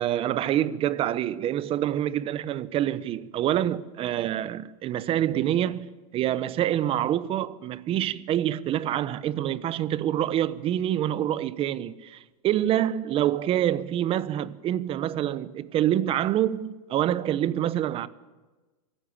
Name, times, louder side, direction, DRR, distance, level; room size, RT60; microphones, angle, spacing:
voice 1, 0.0-18.1, right 11 dB, 30° right, 1.0 m, -26 dB
23.5 x 16.0 x 8.8 m
supercardioid pair, 140°, 19 cm